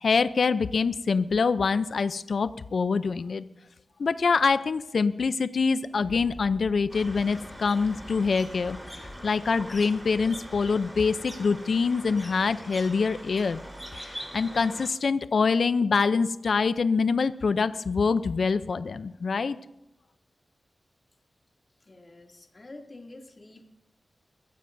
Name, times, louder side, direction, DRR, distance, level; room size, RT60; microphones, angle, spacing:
voice 1, 0.0-3.4 4.0-13.6 13.9-19.6, left 5 dB, 75° left, 12 dB, 0.5 m, -25 dB
Thunder, 5.7-13.1 13.6-13.7, left 1 dB, 25° left, 1.2 m, -49 dB
sound 1, 6.9-14.9, equal, 15° right, 4.0 m, -43 dB
voice 2, 21.9-23.6, left 2 dB, 40° left, 1 dB, 2.5 m, -47 dB
23.5 x 14.5 x 2.6 m, 0.90 s
wide cardioid pair, 80°, 0 cm